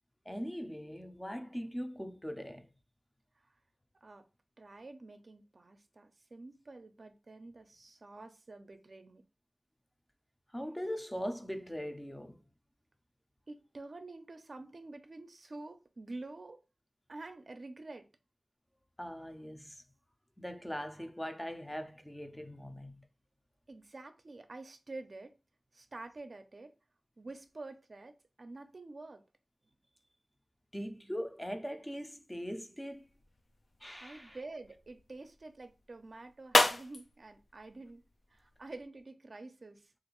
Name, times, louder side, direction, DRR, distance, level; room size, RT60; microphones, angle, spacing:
voice 1, 0.3-2.7 10.5-12.4 19.0-19.8 20.4-23.1 30.7-33.1 33.8-34.4, equal, 10° left, 0.5 m, -41 dB
voice 2, 4.6-9.2 13.5-16.6 17.1-18.1 23.7-25.3 25.7-26.7 27.2-29.2 34.0-38.0 38.3-39.8, right 2 dB, 60° right, 0.4 m, -48 dB
sound 1, 32.9-38.9, left 2 dB, 70° left, 0.4 m, -35 dB
3.0 x 2.5 x 2.9 m
wide cardioid pair, 60°, 0 cm